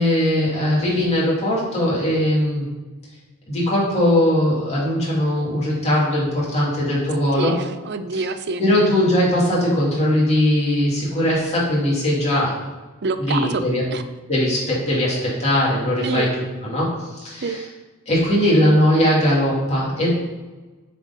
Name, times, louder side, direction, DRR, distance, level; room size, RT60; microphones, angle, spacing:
voice 1, 0.0-2.7 3.5-7.6 8.6-12.5 13.2-13.8 14.3-16.3 16.6-17.6 18.1-20.1, left 1 dB, 30° left, -6 dB, 2.5 m, -20 dB
voice 2, 7.3-8.6 13.0-13.6 13.9-14.0 16.0-16.3 17.4-17.6, right 4 dB, 50° right, 10 dB, 0.5 m, -26 dB
7.0 x 4.3 x 5.3 m, 1.2 s
head